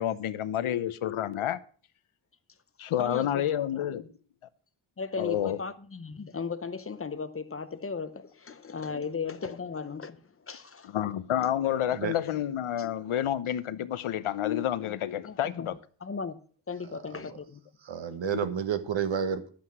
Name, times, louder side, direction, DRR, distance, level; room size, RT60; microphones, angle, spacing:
voice 1, 0.0-1.6 2.8-4.0 5.2-5.6 10.9-15.8 18.3-18.5, left 11 dB, 80° left, 0.9 m, -29 dB
voice 2, 3.0-3.4 4.0-4.1 5.0-10.9 15.2-15.7 16.0-16.4 16.7-17.6, left 5 dB, 30° left, 0.7 m, -36 dB
voice 3, 17.8-19.5, right 7 dB, 65° right, 1.3 m, -30 dB
11.5 x 8.4 x 6.1 m
wide cardioid pair, 170°, 49 cm